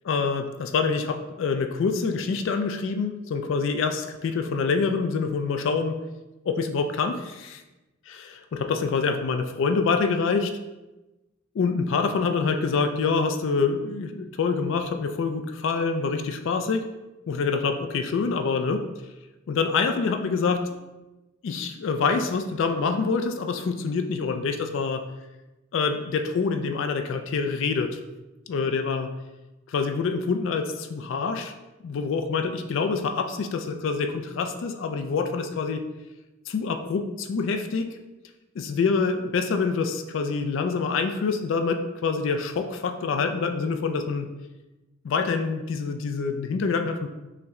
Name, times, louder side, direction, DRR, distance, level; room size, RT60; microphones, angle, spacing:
voice 1, 0.1-6.0 6.4-7.6 8.1-10.6 11.5-16.8 17.3-18.9 19.5-20.8 21.4-25.0 25.7-28.0 28.5-29.1 29.7-31.5 31.8-35.8 36.5-37.9 38.6-44.3 45.0-47.1, left 4 dB, 65° left, 7 dB, 0.3 m, -26 dB
5.5 x 2.1 x 3.6 m, 1.0 s
head